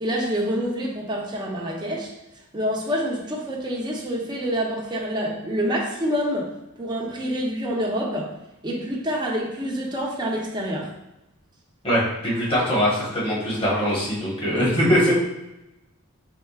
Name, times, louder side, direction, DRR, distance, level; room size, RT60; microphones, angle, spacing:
voice 1, 0.0-2.1 2.5-6.5 6.8-8.3 8.6-10.9 14.5-14.6, equal, 20° right, -2 dB, 0.8 m, -27 dB
voice 2, 11.8-15.1, equal, 25° left, -6 dB, 1.3 m, -22 dB
4.6 x 3.5 x 2.4 m, 0.93 s
head